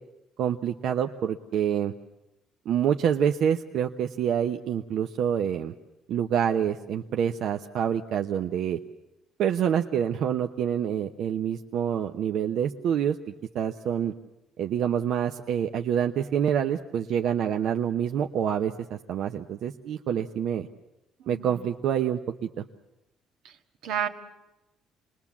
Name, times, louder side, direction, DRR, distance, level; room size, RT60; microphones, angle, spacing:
voice 1, 0.4-1.9 2.7-5.7 6.1-8.8 9.4-14.1 14.6-20.7 21.3-22.6, right 9 dB, 65° right, 5 dB, 0.9 m, -27 dB
voice 2, 21.2-21.7 23.5-23.6 23.8-24.1, right 8 dB, 90° right, 5 dB, 1.7 m, -31 dB
28.0 x 21.0 x 7.3 m, 0.96 s
cardioid pair, 145°, 0 cm